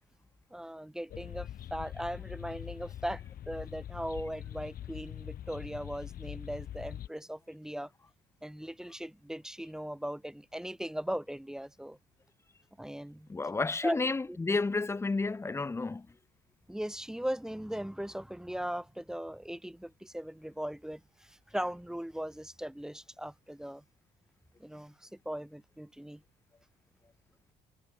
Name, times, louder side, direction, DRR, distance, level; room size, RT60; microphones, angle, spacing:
voice 1, 0.5-7.9 8.4-12.0 12.8-13.3 13.8-14.0 14.3-14.4 16.7-23.8 24.6-26.2, equal, 5° right, 3.1 m, -39 dB
sound 1, 1.1-7.1, left 11 dB, 60° left, 6.5 m, -43 dB
voice 2, 13.3-16.1, left 3 dB, 15° left, 0.9 m, -31 dB
cardioid pair, 110°, 17 cm